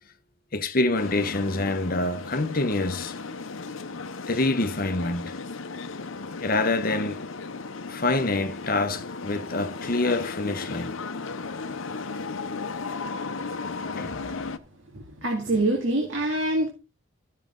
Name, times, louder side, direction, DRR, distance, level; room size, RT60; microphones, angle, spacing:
voice 1, 0.5-3.1 4.3-5.4 6.4-7.2 7.9-10.9 14.0-14.1, left 2 dB, 45° left, 1.0 m, -26 dB
sound 1, 0.9-14.6, left 4 dB, 80° left, 0.8 m, -35 dB
voice 2, 14.0-14.4 14.9-16.7, right 1 dB, 75° right, 2.1 m, -26 dB
13.0 x 6.6 x 3.8 m
head